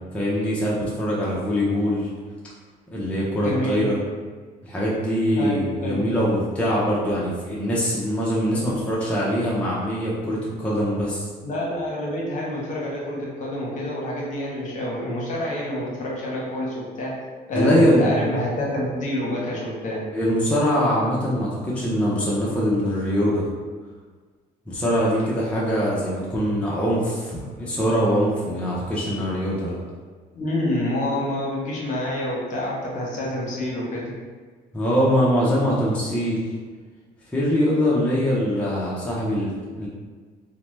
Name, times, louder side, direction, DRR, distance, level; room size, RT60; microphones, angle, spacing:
voice 1, 0.1-2.1 2.9-4.0 4.6-11.3 17.5-18.4 20.1-23.4 24.7-29.8 34.7-36.4 37.3-39.9, equal, 5° left, -7 dB, 0.6 m, -23 dB
voice 2, 3.4-3.8 5.3-6.1 11.4-17.2 17.5-20.0 30.3-34.1, left 1 dB, 50° left, -4 dB, 0.9 m, -27 dB
2.8 x 2.1 x 3.2 m, 1.5 s
cardioid pair, 110°, 17 cm